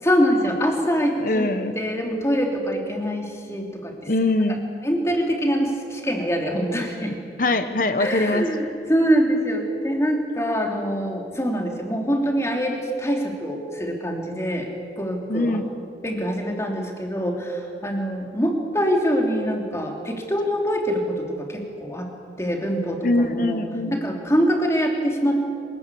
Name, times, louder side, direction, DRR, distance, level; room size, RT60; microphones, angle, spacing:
voice 1, 0.0-4.1 4.8-7.1 8.0-14.7 15.0-15.6 16.0-22.1 22.4-23.6 23.9-25.5, equal, 15° left, 2 dB, 3.2 m, -24 dB
voice 2, 1.2-1.8 4.1-4.6 7.4-8.4 15.3-15.7 23.0-24.0, left 2 dB, 50° left, 9 dB, 1.1 m, -22 dB
26.5 x 18.5 x 8.5 m, 2.4 s
head